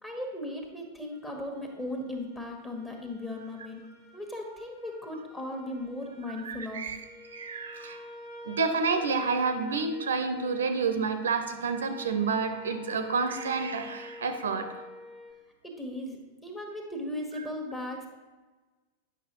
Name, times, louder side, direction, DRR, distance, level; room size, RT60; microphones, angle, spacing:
voice 1, 0.0-3.8 4.1-6.8 15.6-18.1, left 1 dB, 10° left, 1 dB, 1.3 m, -37 dB
sound 1, 1.1-15.3, equal, 30° left, 1.4 m, -48 dB
voice 2, 6.3-7.0 7.3-8.0 8.4-14.8, right 4 dB, 65° right, 8 dB, 0.6 m, -29 dB
9.1 x 5.7 x 3.0 m, 1.3 s
figure-of-eight pair, 90°, 0 cm